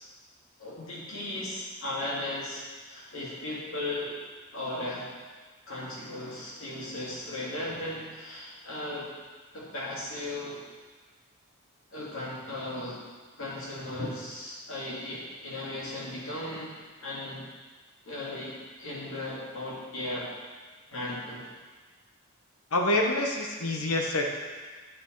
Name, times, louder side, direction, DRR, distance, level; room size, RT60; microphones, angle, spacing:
voice 1, 0.6-4.1 4.5-5.1 5.7-9.1 9.5-10.6 11.9-13.0 13.4-16.7 17.0-17.5 18.0-20.3 20.9-21.5, left 1 dB, 65° left, -6 dB, 2.5 m, -36 dB
voice 2, 22.7-24.3, left 1 dB, 90° left, 2 dB, 1.2 m, -26 dB
9.0 x 6.3 x 4.7 m, 1.4 s
head